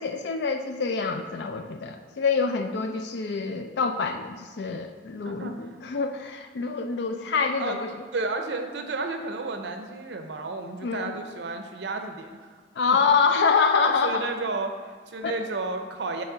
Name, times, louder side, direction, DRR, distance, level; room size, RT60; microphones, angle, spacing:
voice 1, 0.0-7.9 10.8-11.1 12.8-14.3 15.2-15.3, left 5 dB, 65° left, 6 dB, 0.4 m, -26 dB
voice 2, 5.2-5.8 7.6-7.8 8.1-12.6 14.0-16.2, right 3 dB, 75° right, 6 dB, 0.6 m, -32 dB
8.9 x 3.2 x 3.8 m, 1.5 s
head